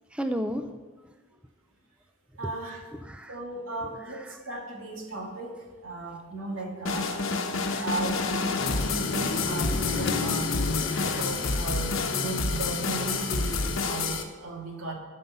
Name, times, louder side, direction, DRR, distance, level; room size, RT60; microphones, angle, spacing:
voice 1, 0.1-0.7 2.4-2.5 2.9-3.4 4.0-4.5 7.5-7.9 9.9-10.2 10.9-11.3, equal, 5° right, 7 dB, 0.4 m, -35 dB
voice 2, 2.4-2.8 3.3-7.1 7.8-8.3 8.8-10.5 11.0-14.9, right 2 dB, 90° right, 0 dB, 2.2 m, -36 dB
sound 1, 6.9-14.2, left 4 dB, 80° left, 1.0 m, -29 dB
sound 2, 8.6-13.8, left 3 dB, 55° left, 0.8 m, -33 dB
12.0 x 5.5 x 6.8 m, 1.3 s
head